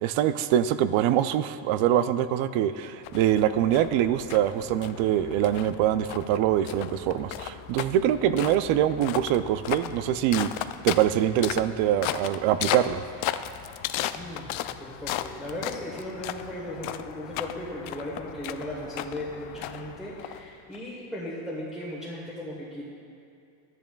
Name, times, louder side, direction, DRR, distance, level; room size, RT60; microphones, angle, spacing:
voice 1, 0.0-13.0, right 11 dB, 85° right, 12 dB, 0.6 m, -24 dB
sound 1, 3.0-20.8, left 12 dB, 85° left, 0.5 m, -36 dB
voice 2, 14.1-22.8, left 1 dB, ahead, -8 dB, 1.1 m, -37 dB
14.0 x 10.5 x 2.3 m, 2.5 s
cardioid pair, 175°, 46 cm